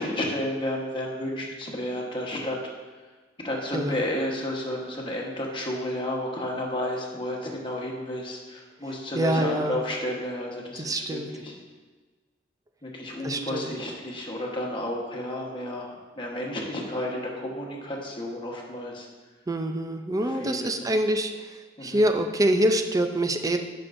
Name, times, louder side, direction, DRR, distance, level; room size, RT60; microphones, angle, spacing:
voice 1, 0.0-2.6 3.4-11.6 12.8-19.1 20.2-20.9 21.8-22.0, left 1 dB, 25° left, -2 dB, 1.2 m, -32 dB
voice 2, 9.2-9.8 10.8-11.3 13.2-13.7 19.5-23.6, right 1 dB, 20° right, 6 dB, 0.5 m, -25 dB
9.8 x 6.0 x 2.6 m, 1.3 s
head